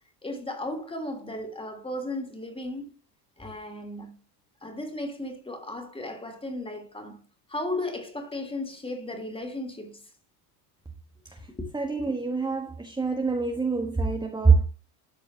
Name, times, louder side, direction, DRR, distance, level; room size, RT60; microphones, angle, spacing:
voice 1, 0.2-2.9 3.4-4.2 4.6-7.2 7.5-10.0 11.6-11.7, left 1 dB, 10° left, 2.9 m, -35 dB
voice 2, 11.7-14.7, right 4 dB, 10° right, 1.4 m, -24 dB
13.5 x 4.9 x 2.9 m
supercardioid pair, 105°, 46 cm